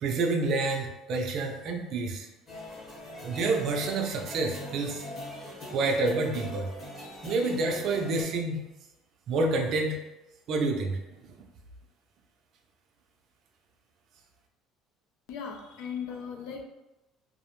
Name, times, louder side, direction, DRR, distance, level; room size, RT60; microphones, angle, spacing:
voice 1, 0.0-2.3 3.2-5.0 5.7-6.7 7.2-8.6 9.3-10.0 10.5-11.0, right 3 dB, 50° right, 3 dB, 0.4 m, -28 dB
sound 1, 2.5-8.2, left 1 dB, 30° left, 0.8 m, -42 dB
voice 2, 15.3-16.6, left 6 dB, 75° left, 2 dB, 0.4 m, -37 dB
2.4 x 2.0 x 2.9 m, 0.99 s
cardioid pair, 155°, 0 cm